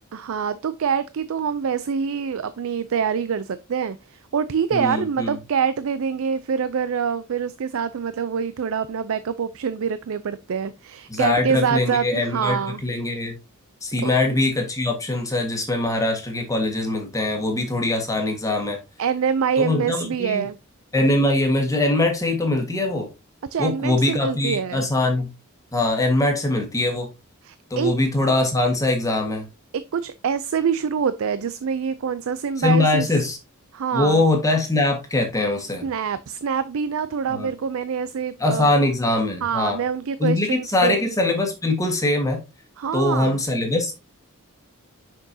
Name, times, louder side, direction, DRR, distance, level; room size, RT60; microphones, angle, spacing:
voice 1, 0.1-12.8 14.0-14.1 19.0-20.6 23.5-24.8 27.4-27.9 29.7-33.1 33.7-34.2 35.8-38.7 39.4-41.1 42.8-43.4, right 6 dB, 65° right, 0.4 m, -25 dB
voice 2, 4.7-5.3 11.1-13.4 13.8-18.8 19.6-20.5 20.9-23.1 23.6-25.3 25.7-27.1 27.7-29.5 32.6-33.4 33.9-35.8 37.3-37.5 38.4-39.8 40.2-42.4 42.9-43.9, left 2 dB, 15° left, 1.6 m, -22 dB
6.4 x 6.0 x 2.7 m
head